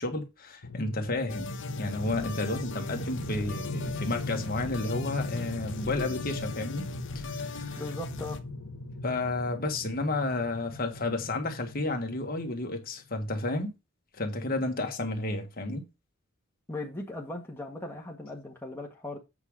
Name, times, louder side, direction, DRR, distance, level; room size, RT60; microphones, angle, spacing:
voice 1, 0.0-1.5 1.8-6.8 7.1-7.9 9.0-13.7 14.1-15.8, left 2 dB, 40° left, 1.7 m, -31 dB
sound 1, 0.6-12.9, left 2 dB, 85° left, 1.3 m, -38 dB
sound 2, 1.3-8.4, left 4 dB, 60° left, 1.1 m, -42 dB
voice 2, 7.8-8.4 16.7-19.2, left 2 dB, 10° left, 1.4 m, -38 dB
8.2 x 4.9 x 5.0 m
head